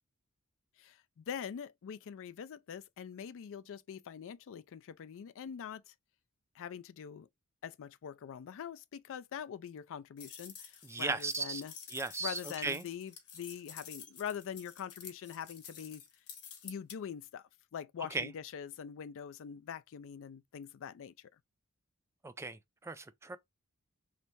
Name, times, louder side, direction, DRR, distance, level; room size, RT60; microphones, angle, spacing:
voice 1, 0.8-5.9 6.6-7.3 7.6-11.7 12.2-16.0 16.6-21.1, left 8 dB, 65° left, 0.4 m, -44 dB
sound 1, 10.2-17.0, left 7 dB, 90° left, 1.2 m, -50 dB
voice 2, 10.8-11.6 11.9-12.8 18.1-18.3 22.2-23.4, right 3 dB, 10° right, 0.3 m, -37 dB
3.2 x 2.6 x 4.4 m
head